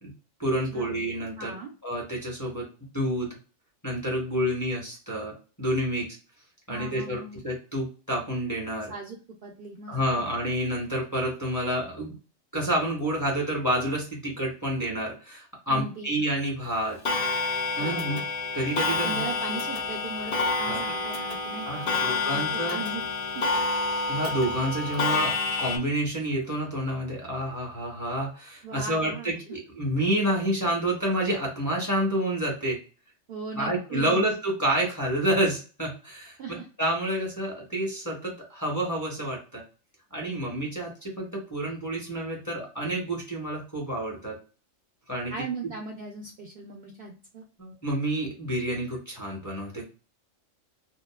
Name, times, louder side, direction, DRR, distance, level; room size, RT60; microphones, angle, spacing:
voice 1, 0.4-1.6 1.8-2.7 2.9-3.3 3.8-6.2 6.7-8.9 9.9-12.2 12.5-17.0 17.8-18.2 18.5-19.2 20.7-20.8 21.6-22.8 24.1-32.8 33.6-36.4 36.8-39.6 40.1-44.4 45.1-45.3 47.6-49.8, right 1 dB, 15° left, -3 dB, 0.9 m, -29 dB
voice 2, 1.4-1.7 6.7-7.4 8.9-10.3 15.7-16.1 17.8-18.3 19.0-22.0 22.3-23.1 28.6-29.4 33.3-34.2 36.4-36.7 45.3-47.4, right 3 dB, 60° right, 1 dB, 0.6 m, -38 dB
Clock, 17.0-25.8, left 3 dB, 55° left, 0.8 m, -28 dB
2.8 x 2.5 x 2.2 m, 0.35 s
omnidirectional pair, 1.3 m